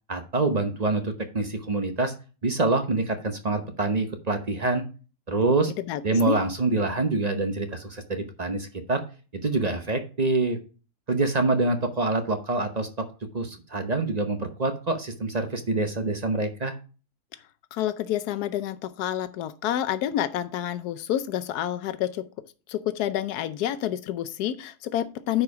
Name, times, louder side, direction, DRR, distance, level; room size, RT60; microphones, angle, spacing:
voice 1, 0.1-2.1 2.4-4.8 5.3-5.7 6.0-9.0 9.4-10.6 11.1-13.1 13.3-16.8, right 3 dB, 35° right, 7 dB, 0.7 m, -26 dB
voice 2, 5.8-6.4 17.7-22.2 22.7-25.4, left 11 dB, 80° left, 13 dB, 1.2 m, -28 dB
9.8 x 4.8 x 4.6 m, 0.36 s
omnidirectional pair, 1.7 m